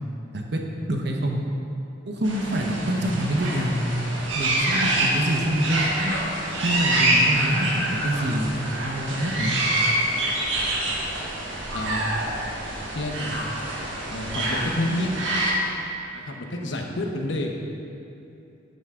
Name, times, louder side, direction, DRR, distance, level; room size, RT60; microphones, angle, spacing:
voice 1, 0.9-1.4 2.1-3.8 4.3-6.1 6.6-9.6, equal, 60° right, 1 dB, 1.1 m, -26 dB
sound 1, 2.2-15.5, right 1 dB, 85° right, 1.7 m, -26 dB
voice 2, 12.9-13.4 14.1-15.1 16.1-17.5, left 1 dB, 75° left, 2 dB, 1.1 m, -29 dB
13.0 x 8.1 x 3.8 m, 2.8 s
head